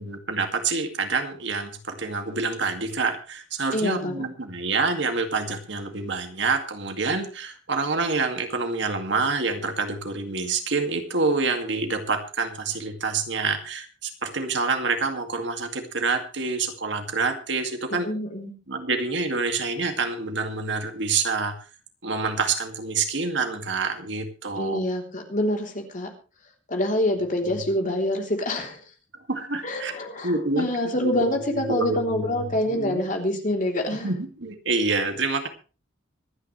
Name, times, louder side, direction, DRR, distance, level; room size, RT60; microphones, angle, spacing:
voice 1, 0.0-18.1 18.7-21.6 22.0-24.8 29.3-29.9 30.2-31.1 31.5-33.0 34.0-35.5, right 4 dB, 70° right, 5 dB, 2.3 m, -27 dB
voice 2, 3.7-4.1 18.0-18.5 24.6-26.1 26.7-28.8 29.6-34.1, left 1 dB, 45° left, 2 dB, 3.5 m, -26 dB
25.5 x 9.6 x 3.3 m, 0.34 s
head